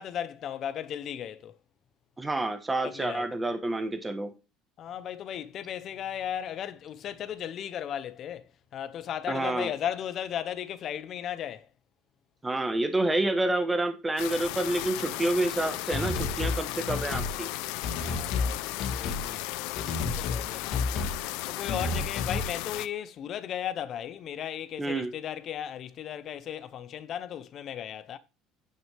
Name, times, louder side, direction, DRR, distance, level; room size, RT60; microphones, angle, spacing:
voice 1, 0.0-1.5 2.8-3.3 4.8-11.7 16.6-17.5 18.0-19.8 20.0-21.1 21.5-28.2, left 10 dB, 40° left, 0.7 m, -36 dB
voice 2, 2.2-4.3 9.3-9.7 12.4-17.5 24.8-25.1, right 2 dB, 10° right, 1.2 m, -28 dB
sound 1, 14.2-22.9, left 17 dB, 80° left, 0.6 m, -35 dB
sound 2, 15.9-16.6 16.9-17.3 17.8-18.5 18.8-19.2 19.8-20.4 20.7-21.2 21.7-22.5, left 3 dB, 60° left, 2.4 m, -30 dB
9.3 x 6.2 x 3.4 m
cardioid pair, 150°, 0 cm